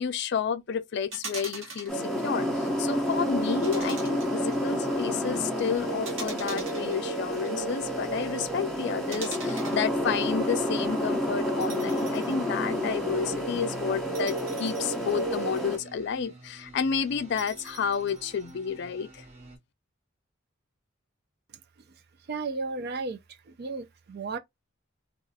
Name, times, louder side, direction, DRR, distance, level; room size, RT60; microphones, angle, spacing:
voice 1, 0.0-19.2, left 6 dB, 55° left, 0.4 m, -31 dB
sound 1, 1.1-2.0 3.6-4.5 6.0-7.5 9.1-9.8 11.6-12.4 12.8-12.9 14.1-15.7 17.4-18.5, right 4 dB, 70° right, 1.2 m, -42 dB
sound 2, 1.9-15.8, equal, ahead, 0.6 m, -30 dB
sound 3, 2.3-19.6, right 2 dB, 35° right, 0.9 m, -49 dB
voice 2, 22.3-23.2 23.5-24.4, right 4 dB, 50° right, 0.4 m, -33 dB
2.4 x 2.4 x 3.9 m
head